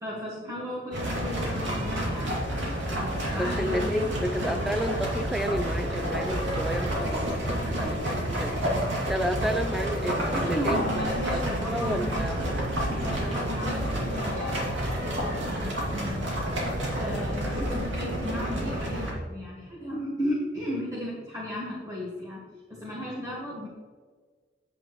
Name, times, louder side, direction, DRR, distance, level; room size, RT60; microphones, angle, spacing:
voice 1, 0.0-2.4 3.2-4.6 7.5-7.9 10.3-12.5 12.9-16.3 16.9-22.4 22.7-23.7, left 1 dB, 20° right, -7 dB, 1.8 m, -35 dB
sound 1, 0.9-19.1, right 1 dB, 80° right, 2.7 m, -29 dB
voice 2, 3.3-10.8 11.3-11.4 11.7-12.5, equal, ahead, 7 dB, 0.4 m, -31 dB
8.9 x 8.9 x 3.1 m, 1.5 s
head